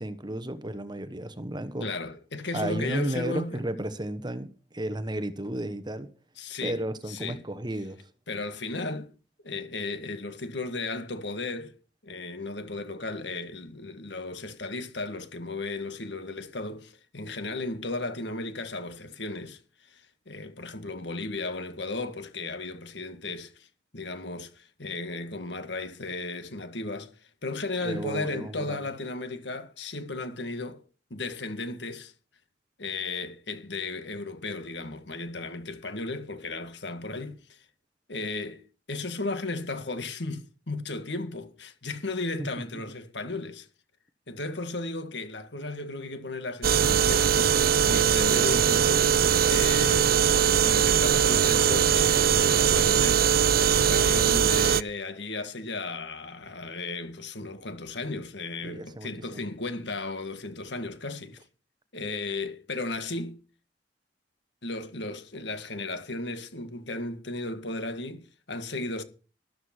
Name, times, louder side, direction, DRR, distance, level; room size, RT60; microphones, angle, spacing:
voice 1, 0.0-1.9 2.5-6.1 6.6-8.0 27.8-28.8 42.4-42.5 58.6-59.4, right 1 dB, 25° right, 1.2 m, -33 dB
voice 2, 1.8-3.6 6.4-7.4 8.3-9.1 9.4-11.8 12.0-23.7 23.9-27.1 27.4-30.8 31.1-32.1 32.8-37.6 38.1-43.7 44.3-49.2 49.5-50.1 50.6-61.4 61.9-63.4 64.6-69.0, left 3 dB, 70° left, 1.8 m, -35 dB
sound 1, 46.6-54.8, right 8 dB, 55° right, 0.5 m, -21 dB
13.0 x 13.0 x 4.5 m
head